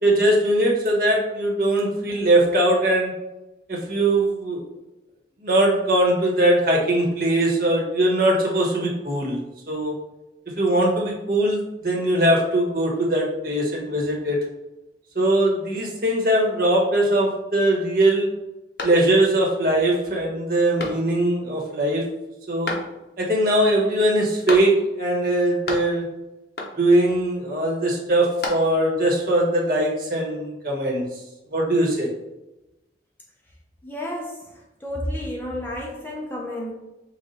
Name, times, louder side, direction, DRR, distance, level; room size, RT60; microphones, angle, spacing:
voice 1, 0.0-3.1 3.7-4.6 5.4-9.4 9.7-9.9 10.6-14.4 15.1-18.3 18.8-22.0 22.5-22.7 23.2-26.0 26.8-31.2 31.5-32.1, right 1 dB, 50° right, -2 dB, 1.2 m, -21 dB
sound 1, 18.8-19.5 19.9-20.0 20.8-21.4 22.6-23.3 24.5-25.1 25.3-26.2 26.6-27.1 28.0-29.0, left 2 dB, 65° left, 0.9 m, -32 dB
voice 2, 33.8-34.4 34.8-36.7, left 1 dB, 10° left, -2 dB, 0.6 m, -31 dB
5.2 x 2.4 x 4.2 m, 0.98 s
head